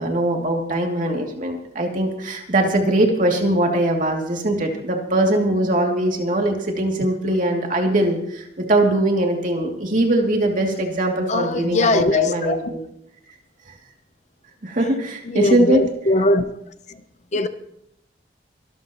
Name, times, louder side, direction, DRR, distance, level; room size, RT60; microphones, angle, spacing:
voice 1, 0.0-12.8 14.6-15.8, right 1 dB, 45° right, 2.6 m, -21 dB
voice 2, 11.3-12.6 15.3-16.5 17.3-17.5, left 2 dB, 40° left, 0.8 m, -20 dB
24.0 x 12.5 x 3.0 m
head